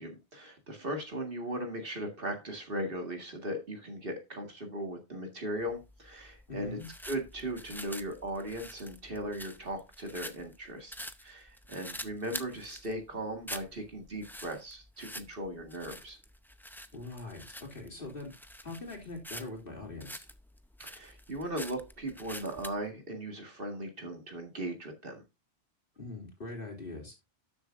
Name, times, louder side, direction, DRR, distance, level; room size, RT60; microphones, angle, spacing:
voice 1, 0.0-16.2 20.8-25.2, right 1 dB, 50° right, 3 dB, 2.1 m, -38 dB
sound 1, 5.6-22.8, equal, 5° left, 0.3 m, -46 dB
voice 2, 6.5-6.9 16.9-18.3 18.6-20.3 26.0-27.1, left 2 dB, 50° left, 1 dB, 3.2 m, -42 dB
12.5 x 7.1 x 2.5 m, 0.24 s
omnidirectional pair, 1.2 m